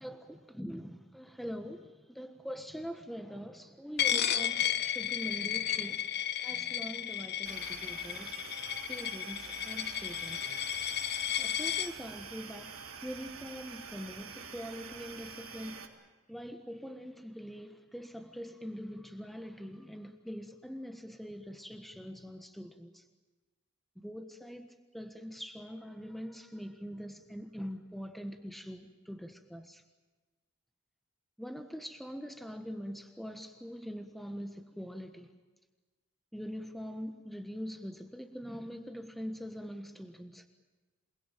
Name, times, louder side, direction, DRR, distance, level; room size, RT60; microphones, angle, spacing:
voice 1, 0.6-6.2 6.4-8.4 8.9-10.5 10.9-11.0 11.4-12.7 13.0-15.8 16.3-23.0 24.0-29.8 31.4-35.3 36.3-40.5, equal, ahead, 7 dB, 1.4 m, -43 dB
Coin (dropping), 4.0-11.9, left 10 dB, 45° left, 1.0 m, -33 dB
sound 1, 7.4-15.8, right 5 dB, 70° right, 3.4 m, -46 dB
28.0 x 20.5 x 9.2 m, 1.2 s
head